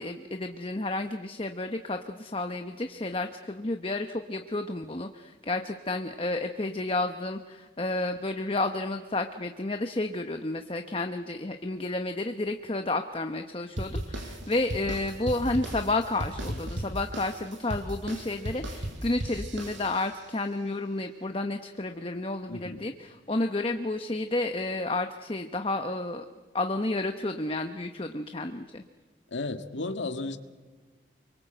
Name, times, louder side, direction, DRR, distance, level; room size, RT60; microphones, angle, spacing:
voice 1, 0.0-26.2 26.5-28.8, left 2 dB, 30° left, 0.9 m, -31 dB
sound 1, 13.8-20.3, right 1 dB, 80° right, 5.6 m, -36 dB
voice 2, 22.5-22.9 29.3-30.4, left 2 dB, 80° left, 1.7 m, -34 dB
29.5 x 23.5 x 7.9 m
head